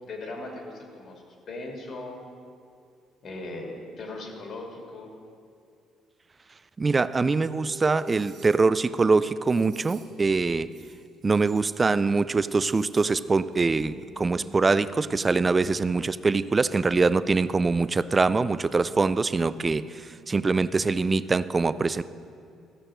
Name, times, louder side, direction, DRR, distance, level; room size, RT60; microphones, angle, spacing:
voice 1, 0.0-2.2 3.2-5.1, left 2 dB, 50° left, 1 dB, 2.3 m, -38 dB
voice 2, 6.8-10.7 11.2-22.0, right 4 dB, 25° right, 15 dB, 0.3 m, -23 dB
sound 1, 7.2-7.3 7.8-8.7 9.4-10.2 10.6-12.1 12.3-13.2 13.5-13.6, right 6 dB, 65° right, 2.0 m, -55 dB
sound 2, 7.3-20.5, right 1 dB, 40° right, 1.8 m, -49 dB
14.5 x 6.5 x 6.2 m, 2.4 s
cardioid pair, 110°, 0 cm